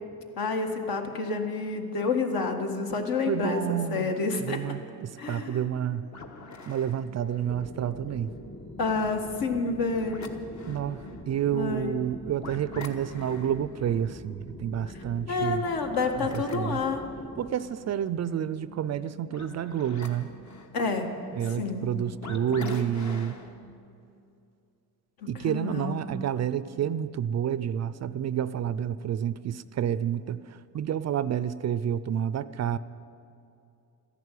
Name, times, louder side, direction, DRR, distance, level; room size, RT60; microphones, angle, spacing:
voice 1, 0.4-4.6 5.2-5.6 8.8-10.3 11.5-12.0 15.3-17.0 20.7-21.1 21.4-21.9 22.5-22.8 25.2-26.0, left 4 dB, 65° left, 3 dB, 1.8 m, -29 dB
voice 2, 3.3-4.1 4.4-6.1 6.7-8.3 10.7-15.6 16.2-16.8 17.4-20.3 21.4-23.4 25.3-30.4 30.7-32.8, right 9 dB, 45° right, 15 dB, 0.4 m, -29 dB
sound 1, 6.0-23.7, left 2 dB, 45° left, 1.4 m, -46 dB
sound 2, 7.4-17.5, left 1 dB, 25° left, 1.6 m, -44 dB
14.0 x 11.0 x 8.3 m, 2.6 s
cardioid pair, 105°, 38 cm